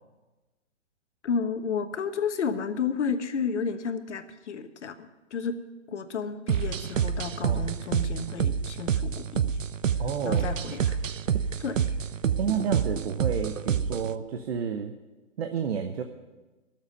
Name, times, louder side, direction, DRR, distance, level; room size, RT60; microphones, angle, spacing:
voice 1, 1.2-5.6 5.9-9.4 10.2-11.0 11.6-11.8, left 5 dB, 65° left, 9 dB, 1.4 m, -31 dB
sound 1, 6.5-14.2, right 7 dB, 90° right, 0.7 m, -28 dB
voice 2, 7.4-7.7 10.0-10.5 11.3-11.4 12.4-14.9 15.4-16.0, right 7 dB, 55° right, 6 dB, 1.1 m, -30 dB
13.0 x 7.4 x 9.5 m, 1.2 s
hypercardioid pair, 145°, 37 cm